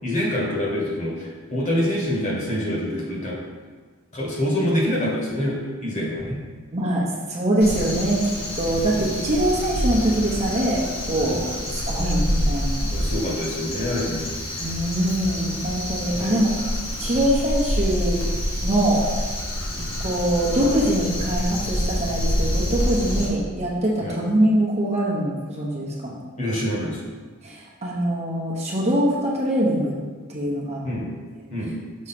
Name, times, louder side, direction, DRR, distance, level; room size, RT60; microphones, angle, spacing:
voice 1, 0.0-3.4 4.1-6.4 8.8-8.9 11.2-11.5 12.9-14.3 16.1-16.4 19.7-19.9 23.1-23.3 24.0-24.2 26.4-27.0 30.8-31.1 31.5-31.7, equal, 35° left, -4 dB, 1.6 m, -26 dB
voice 2, 6.7-11.4 11.7-12.9 14.6-16.5 17.0-18.2 18.6-19.0 20.0-26.2 27.4-30.0 30.3-30.8, right 1 dB, 30° right, -4 dB, 1.0 m, -23 dB
Crow, 7.6-23.3, equal, 75° left, 1.5 m, -27 dB
6.3 x 3.2 x 5.8 m, 1.4 s
head